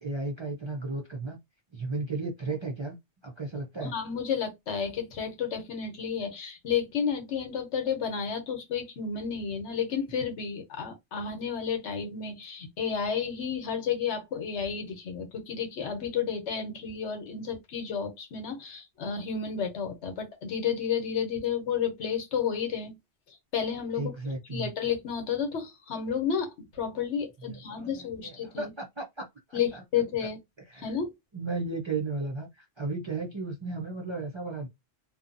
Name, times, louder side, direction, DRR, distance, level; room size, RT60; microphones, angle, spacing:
voice 1, 0.0-1.4 1.7-3.0 3.2-3.9 24.0-24.7 27.5-29.8 30.2-30.3 30.7-30.9 31.3-34.7, right 3 dB, 40° right, 0.4 m, -34 dB
voice 2, 3.8-23.0 23.5-24.1 24.5-28.7 29.5-30.4 30.8-31.1, left 7 dB, 90° left, 1.1 m, -31 dB
2.7 x 2.2 x 2.5 m
omnidirectional pair, 1.1 m